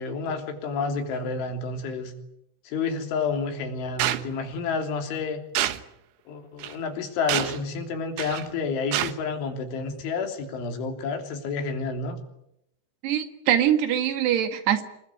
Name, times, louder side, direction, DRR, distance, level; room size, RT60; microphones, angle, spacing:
voice 1, 0.0-2.1 2.7-5.4 6.3-12.2, left 4 dB, 85° left, 5 dB, 5.7 m, -30 dB
sound 1, 4.0-4.2 5.6-5.8 6.6-6.7 7.3-7.6 8.2-8.5 8.9-9.1, right 13 dB, 85° right, 3.7 m, -26 dB
voice 2, 13.0-14.8, right 10 dB, 70° right, 9 dB, 3.7 m, -23 dB
27.0 x 20.5 x 9.4 m, 0.80 s
omnidirectional pair, 5.3 m